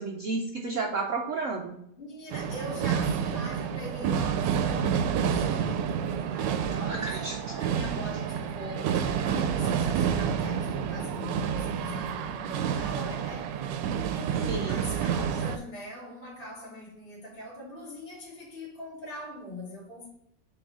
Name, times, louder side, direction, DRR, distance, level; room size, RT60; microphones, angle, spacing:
voice 1, 0.0-1.8 6.9-7.6 14.5-14.8, right 3 dB, 65° right, 0.8 m, -32 dB
voice 2, 2.0-7.2 7.6-13.5 14.1-20.1, left 1 dB, 35° left, 2.0 m, -42 dB
sound 1, 2.3-15.6, right 7 dB, 80° right, 1.2 m, -29 dB
4.6 x 3.8 x 5.4 m
omnidirectional pair, 1.9 m